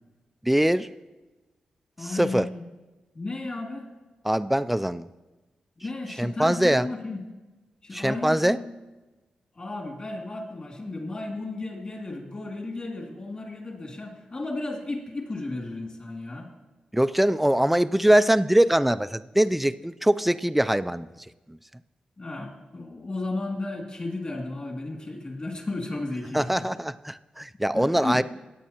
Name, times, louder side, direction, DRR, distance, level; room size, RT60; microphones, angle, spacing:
voice 1, 0.4-0.9 2.0-2.5 4.2-5.1 6.2-6.9 7.9-8.6 16.9-21.1 21.5-21.6 26.3-28.2, right 1 dB, 5° right, 13 dB, 0.4 m, -22 dB
voice 2, 2.0-2.6 3.1-3.9 5.8-7.2 7.8-8.7 9.5-16.5 22.2-26.6 27.7-28.2, left 2 dB, 35° left, 1 dB, 2.5 m, -34 dB
17.5 x 9.0 x 2.9 m, 1.2 s
cardioid pair, 85°, 3 cm